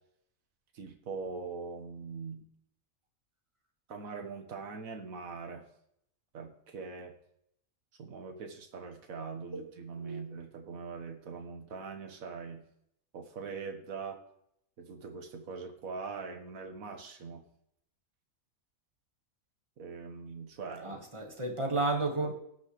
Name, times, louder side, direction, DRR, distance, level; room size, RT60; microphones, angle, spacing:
voice 1, 0.7-2.4 3.9-5.6 6.3-7.1 8.0-12.6 13.1-14.2 14.8-17.4 19.8-21.0, right 5 dB, 85° right, 5 dB, 1.7 m, -42 dB
voice 2, 20.8-22.3, right 2 dB, 25° right, 3 dB, 1.6 m, -32 dB
17.5 x 6.4 x 3.2 m, 0.72 s
omnidirectional pair, 1.4 m